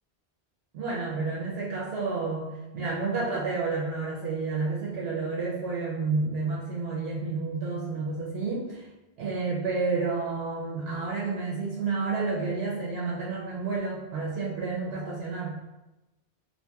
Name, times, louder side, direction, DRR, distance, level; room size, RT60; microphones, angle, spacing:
voice 1, 0.7-8.9 9.2-15.6, right 4 dB, 75° right, -5 dB, 0.8 m, -30 dB
2.7 x 2.4 x 2.2 m, 1.0 s
omnidirectional pair, 1.0 m